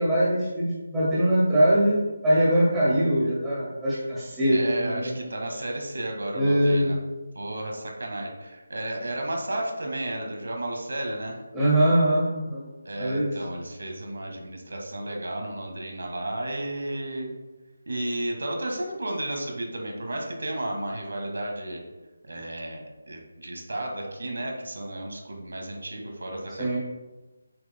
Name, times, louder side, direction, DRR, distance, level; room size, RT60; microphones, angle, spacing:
voice 1, 0.0-5.1 6.3-6.9 11.5-12.6 13.0-13.3 26.6-26.8, right 1 dB, 5° right, -10 dB, 1.8 m, -22 dB
voice 2, 4.5-7.0 7.3-11.4 12.8-17.3 17.9-21.8 22.2-26.8, right 1 dB, 85° right, 1 dB, 1.6 m, -33 dB
7.6 x 5.8 x 2.2 m, 1.2 s
figure-of-eight pair, 175°, 0 cm